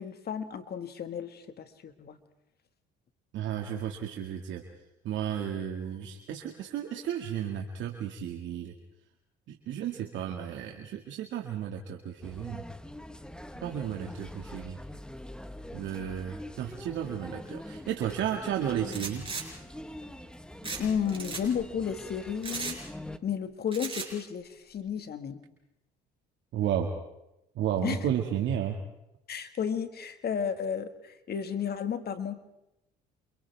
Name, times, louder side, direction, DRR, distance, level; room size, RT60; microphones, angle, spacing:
voice 1, 0.0-2.2 20.6-22.8 23.2-25.4 27.8-28.1 29.3-32.4, left 7 dB, 50° left, 9 dB, 1.9 m, -33 dB
voice 2, 3.3-4.6 5.0-8.7 9.5-12.7 13.6-14.8 15.7-19.3 26.5-26.9 27.6-28.8, right 9 dB, 70° right, 2 dB, 2.1 m, -33 dB
sound 1, 12.2-23.2, left 1 dB, 5° left, 1.4 m, -44 dB
sound 2, 18.9-19.4 20.6-20.8 21.1-21.4 22.4-22.8 23.7-24.1, right 4 dB, 25° right, 5.9 m, -36 dB
30.0 x 28.0 x 3.6 m, 0.89 s
supercardioid pair, 70°, 20 cm